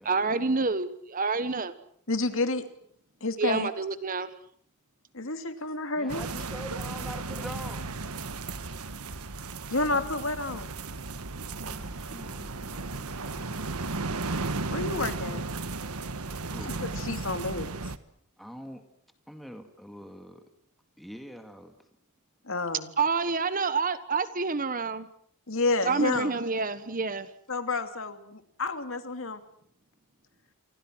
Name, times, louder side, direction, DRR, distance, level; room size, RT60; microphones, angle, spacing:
voice 1, 0.0-1.7 3.4-4.3 23.0-25.1 25.8-27.3, right 4 dB, 40° right, 13 dB, 1.3 m, -28 dB
voice 2, 2.1-2.6 3.2-3.7 5.1-6.2 9.7-10.7 14.7-15.4 16.8-17.7 22.5-22.9 25.5-26.3 27.5-29.4, left 3 dB, 60° left, 8 dB, 2.6 m, -30 dB
voice 3, 6.0-7.9 11.4-14.1 16.5-16.8 18.4-18.8 19.3-20.4 21.0-21.7, equal, ahead, 5 dB, 2.2 m, -44 dB
sound 1, 6.1-18.0, right 3 dB, 85° right, 1.5 m, -35 dB
28.5 x 25.0 x 6.3 m, 0.64 s
head